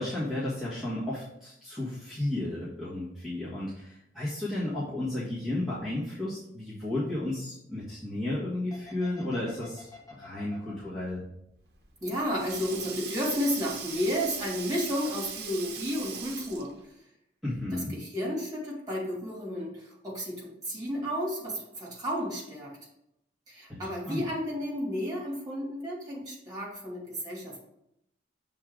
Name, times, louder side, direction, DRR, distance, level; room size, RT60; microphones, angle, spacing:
voice 1, 0.0-11.2 17.4-17.9 23.7-23.8 24.1-24.2, left 1 dB, ahead, -11 dB, 1.6 m, -33 dB
sound 1, 8.7-12.4 12.7-13.7 14.0-14.1, left 4 dB, 20° left, 1.3 m, -50 dB
Sink (filling or washing), 11.7-16.8, right 7 dB, 60° right, 1.0 m, -40 dB
voice 2, 12.0-17.0 17.7-22.8 23.5-27.6, equal, 20° right, -4 dB, 2.7 m, -32 dB
6.9 x 3.8 x 4.8 m, 0.79 s
head